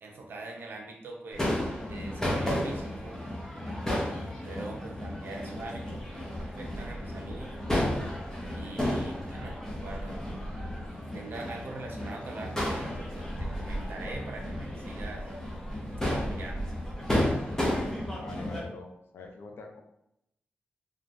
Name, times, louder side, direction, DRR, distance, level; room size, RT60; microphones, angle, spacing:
voice 1, 0.0-1.5 1.9-3.2 4.1-7.5 8.6-10.3 11.1-15.3 16.1-16.7, right 2 dB, 70° right, 0 dB, 0.5 m, -43 dB
Crowd / Fireworks, 1.3-18.6, left 1 dB, 15° left, 0.6 m, -33 dB
voice 2, 18.1-19.8, left 3 dB, 80° left, 2 dB, 0.5 m, -44 dB
3.4 x 2.2 x 2.5 m, 0.79 s
wide cardioid pair, 145°, 4 cm